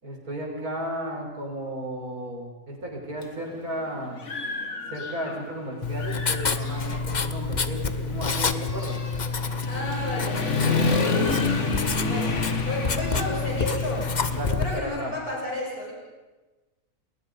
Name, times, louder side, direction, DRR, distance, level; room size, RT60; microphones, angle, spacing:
voice 1, 0.0-4.2 4.9-9.0 14.3-15.1, right 1 dB, 90° right, 0 dB, 5.9 m, -34 dB
Human voice / Motorcycle, 3.2-3.3 3.8-5.6 5.9-14.5, left 4 dB, 55° left, 2.2 m, -30 dB
Writing, 5.8-14.8, left 4 dB, 35° left, 1.0 m, -28 dB
voice 2, 9.6-11.1 12.0-14.0 14.6-15.9, left 1 dB, 85° left, -3 dB, 6.9 m, -32 dB
29.5 x 21.0 x 5.4 m, 1.2 s
omnidirectional pair, 1.5 m